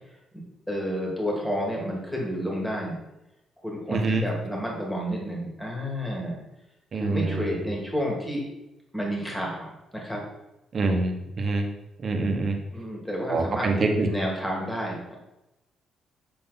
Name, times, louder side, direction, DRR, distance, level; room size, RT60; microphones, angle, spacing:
voice 1, 0.7-3.0 3.6-6.4 7.0-8.4 8.9-10.2 12.7-15.1, equal, 10° left, -1 dB, 2.0 m, -30 dB
voice 2, 3.9-4.2 6.9-7.4 10.7-11.7 12.0-12.6 13.3-14.1, right 3 dB, 45° right, 4 dB, 1.0 m, -25 dB
6.7 x 3.7 x 4.0 m, 0.93 s
cardioid pair, 90°, 0 cm